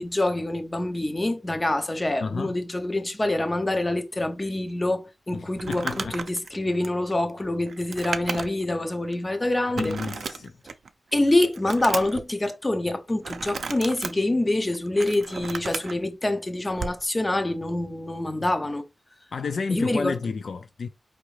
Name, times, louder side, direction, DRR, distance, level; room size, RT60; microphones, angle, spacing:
voice 1, 0.0-10.0 11.1-18.8 19.7-20.2, left 1 dB, 25° left, 0.7 m, -26 dB
voice 2, 2.2-2.5 5.3-6.1 9.8-10.5 19.3-20.9, left 5 dB, 75° left, 0.3 m, -31 dB
Crumpling crinkling, 5.6-8.7 9.1-9.2 9.8-10.9 11.3-12.2 13.2-14.1 14.7-15.9 16.7-17.0, right 5 dB, 80° right, 0.4 m, -34 dB
4.8 x 3.0 x 3.2 m
wide cardioid pair, 115°, 0 cm